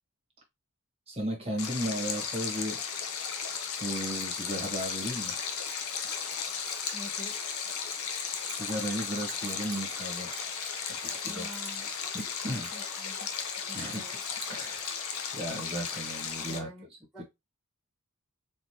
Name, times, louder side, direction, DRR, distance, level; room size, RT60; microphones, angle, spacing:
voice 1, 1.1-2.8 3.8-5.4 8.4-11.6 12.1-12.7 13.7-14.0 14.5-15.0 15.3-16.7, right 1 dB, 25° right, 1.5 m, -35 dB
Stream, 1.6-16.6, left 6 dB, 75° left, 0.8 m, -35 dB
Bell, 3.9-15.6, right 9 dB, 65° right, 0.8 m, -51 dB
voice 2, 6.9-7.4 11.2-11.9 12.5-13.3 13.6-14.1 16.4-17.2, equal, ahead, 1.3 m, -47 dB
4.3 x 3.2 x 2.9 m
head